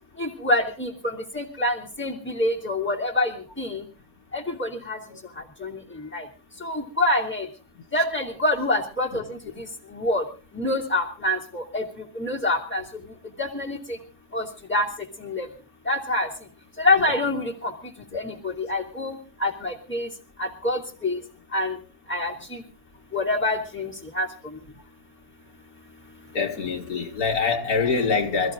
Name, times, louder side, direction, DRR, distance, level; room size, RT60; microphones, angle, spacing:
voice 1, 0.2-3.3 3.6-3.8 4.3-5.0 5.6-5.7 6.1-6.2 6.6-7.5 7.9-9.4 9.9-10.2 10.5-11.8 12.2-12.8 13.4-13.8 14.3-14.4 14.7-14.9 15.2-15.5 15.9-16.3 16.8-17.7 18.1-19.1 19.4-20.1 20.4-21.2 21.5-21.8 22.1-22.6 23.1-24.3, left 1 dB, 5° left, 2.7 m, -26 dB
voice 2, 26.3-28.5, left 5 dB, 75° left, 2.2 m, -24 dB
26.5 x 14.5 x 2.5 m
omnidirectional pair, 1.6 m